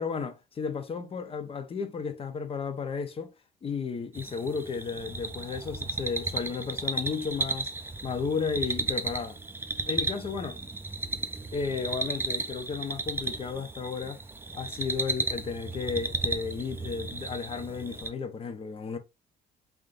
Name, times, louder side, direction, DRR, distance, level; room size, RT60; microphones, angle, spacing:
voice 1, 0.0-3.3 3.6-7.7 8.0-9.4 9.9-10.6 11.5-14.2 14.5-19.0, left 5 dB, 35° left, 0.8 m, -33 dB
sound 1, 4.2-18.1, right 3 dB, 15° right, 0.5 m, -34 dB
3.7 x 3.6 x 2.5 m
cardioid pair, 110°, 17 cm